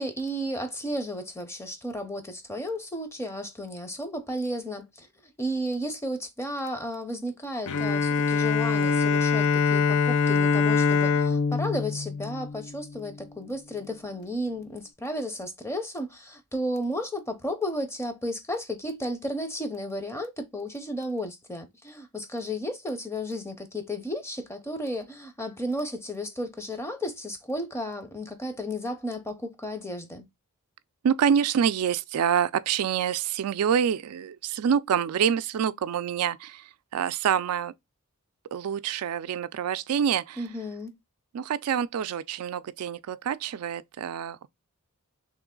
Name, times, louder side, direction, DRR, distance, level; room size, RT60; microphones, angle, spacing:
voice 1, 0.0-30.3 40.4-40.9, equal, 10° left, 0.6 m, -33 dB
Bowed string instrument, 7.7-13.1, left 5 dB, 70° left, 0.5 m, -24 dB
voice 2, 31.0-36.6 36.9-37.7 38.5-40.4 41.3-44.5, right 8 dB, 80° right, 0.3 m, -26 dB
3.2 x 3.0 x 3.7 m
head